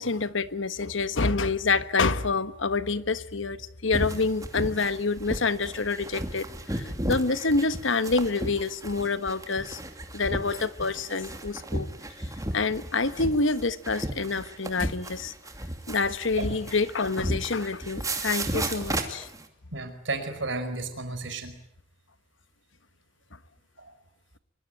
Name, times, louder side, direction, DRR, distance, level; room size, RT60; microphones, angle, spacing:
voice 1, 0.0-9.8 10.1-11.9 12.5-15.3 15.9-19.3, left 3 dB, 70° left, 1.3 m, -27 dB
sound 1, 3.9-19.5, right 1 dB, 15° right, 2.6 m, -34 dB
voice 2, 19.7-21.6 23.8-24.0, right 3 dB, 70° right, 4.9 m, -33 dB
24.0 x 23.5 x 9.2 m
head